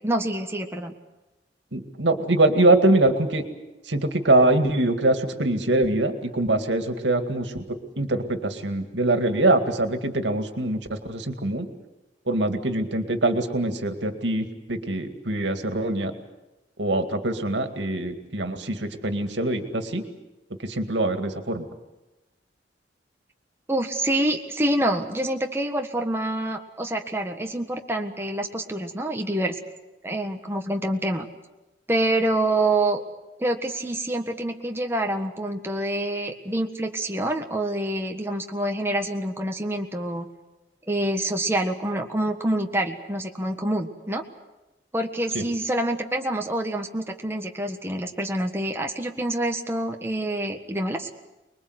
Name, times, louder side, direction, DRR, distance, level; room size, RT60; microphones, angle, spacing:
voice 1, 0.0-0.9 23.7-29.6 30.0-31.3 31.9-33.0 33.4-40.3 40.9-44.2 44.9-51.1, right 1 dB, 15° right, 3 dB, 1.6 m, -26 dB
voice 2, 1.7-3.4 3.9-11.7 12.3-16.1 16.8-20.0 20.6-21.6 45.3-45.4, right 2 dB, 85° right, 7 dB, 2.2 m, -23 dB
25.0 x 21.5 x 8.1 m, 1.0 s
head